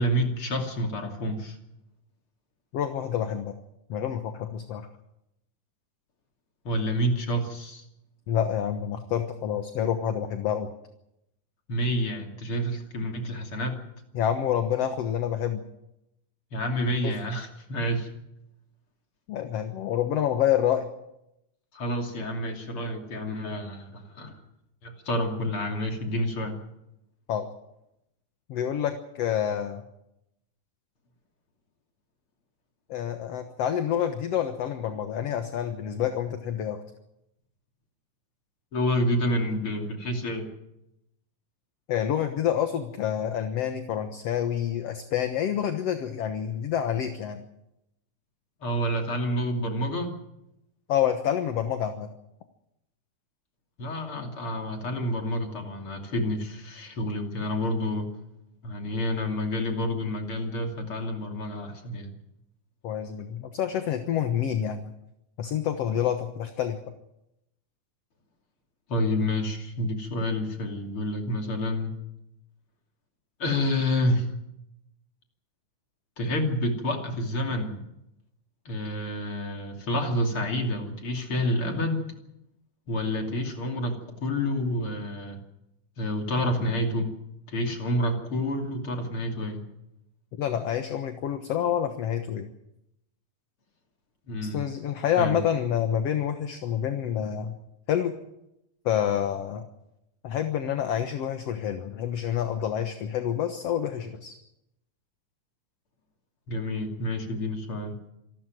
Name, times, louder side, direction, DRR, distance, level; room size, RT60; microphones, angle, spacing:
voice 1, 0.0-1.6 6.7-7.9 11.7-13.8 16.5-18.1 21.7-24.4 24.8-26.6 38.7-40.5 48.6-50.1 53.8-58.1 58.6-62.1 68.9-71.9 73.4-74.4 76.2-77.8 78.7-82.1 82.9-85.4 86.0-87.1 87.5-89.6 94.3-94.6 95.2-95.4 106.5-108.0, left 1 dB, 45° left, 3 dB, 3.5 m, -29 dB
voice 2, 2.7-3.5 3.9-4.9 8.3-10.7 14.1-15.6 17.0-17.1 19.3-20.9 27.3-27.5 28.5-29.8 32.9-36.8 41.9-47.4 50.9-52.1 62.8-64.9 65.4-66.8 90.4-92.5 94.4-97.6 97.9-98.1 98.9-99.7 100.2-104.4, left 9 dB, 60° left, 7 dB, 2.1 m, -28 dB
26.5 x 12.5 x 9.4 m, 0.85 s
omnidirectional pair, 3.6 m